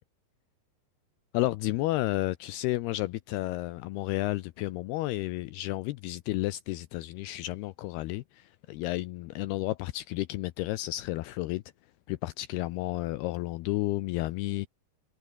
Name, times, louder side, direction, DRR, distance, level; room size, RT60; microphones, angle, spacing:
voice 1, 1.3-11.6 12.1-14.7, left 17 dB, 80° left, 2.6 m, -32 dB
omnidirectional pair, 4.9 m